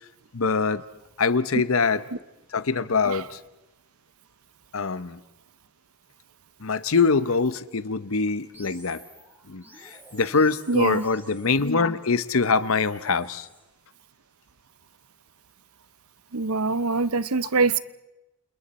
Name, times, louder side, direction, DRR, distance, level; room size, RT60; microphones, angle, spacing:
voice 1, 0.3-0.8 1.2-2.0 2.5-3.4 4.7-5.2 6.6-9.0 9.5-13.5, left 4 dB, 70° left, 14 dB, 0.9 m, -24 dB
sound 1, 8.5-13.6, equal, 10° right, 6.3 m, -50 dB
voice 2, 10.7-11.0 16.3-17.8, right 4 dB, 85° right, 15 dB, 0.8 m, -23 dB
29.0 x 28.0 x 4.3 m, 0.98 s
head